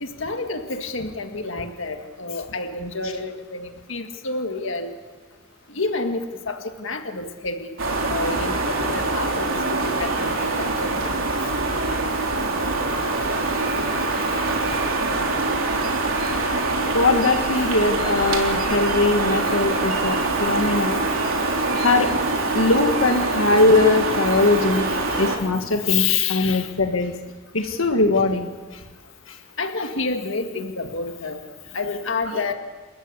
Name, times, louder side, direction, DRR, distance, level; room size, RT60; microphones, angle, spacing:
voice 1, 0.0-4.9 5.7-7.8 8.1-11.1 25.8-26.7 27.6-27.7 28.7-28.8 29.3-31.4 31.7-32.5, left 4 dB, 65° left, 6 dB, 1.8 m, -29 dB
sound 1, 7.8-25.4, right 3 dB, 80° right, 3.6 m, -24 dB
voice 2, 16.9-21.0 21.7-22.1 22.5-24.9 25.2-27.1 27.5-28.5, left 3 dB, 85° left, 5 dB, 1.7 m, -20 dB
29.0 x 13.5 x 8.5 m, 1.4 s
head